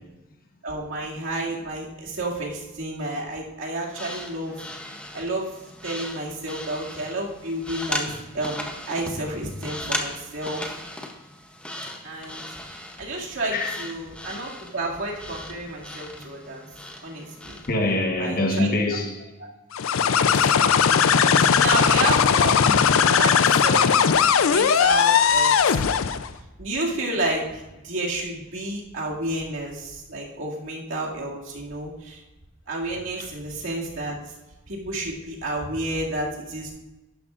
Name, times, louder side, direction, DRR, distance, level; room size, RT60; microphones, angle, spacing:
voice 1, 0.6-5.5 5.8-10.7 12.0-16.7 17.0-17.6 18.2-18.7 19.4-19.5 20.1-20.3 21.4-24.0 24.4-25.8 26.6-32.2 32.7-34.2 34.7-36.7, right 2 dB, 70° right, 2.3 m, -31 dB
sound 1, 3.9-17.7, left 1 dB, 5° left, 0.7 m, -37 dB
voice 2, 17.7-19.3 20.1-20.4 22.7-22.9, left 2 dB, 45° left, 1.1 m, -25 dB
sound 2, 19.7-26.3, left 7 dB, 85° left, 0.5 m, -18 dB
11.5 x 10.0 x 2.5 m
head